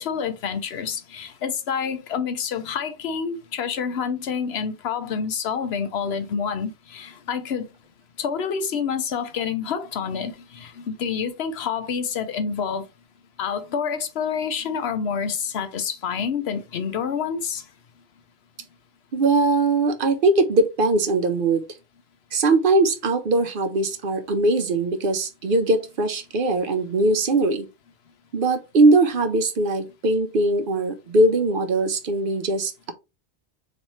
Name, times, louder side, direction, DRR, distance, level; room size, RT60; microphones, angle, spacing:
voice 1, 0.0-7.7 8.2-12.9 13.4-17.6, left 6 dB, 85° left, 1.0 m, -28 dB
voice 2, 19.1-21.7 22.3-27.7 28.3-32.9, right 2 dB, 60° right, 0.8 m, -21 dB
4.1 x 3.2 x 3.1 m
omnidirectional pair, 1.0 m